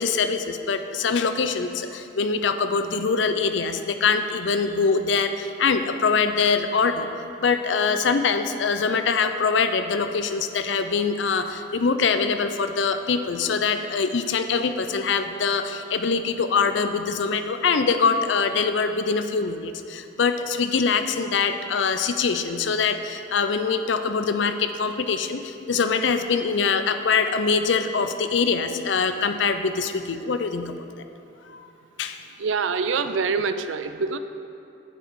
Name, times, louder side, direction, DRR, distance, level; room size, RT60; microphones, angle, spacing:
voice 1, 0.0-30.7 31.4-31.6 32.0-32.2, left 5 dB, 75° left, 8 dB, 0.5 m, -23 dB
voice 2, 32.4-34.2, right 5 dB, 85° right, 10 dB, 0.5 m, -25 dB
8.9 x 8.0 x 4.7 m, 2.7 s
head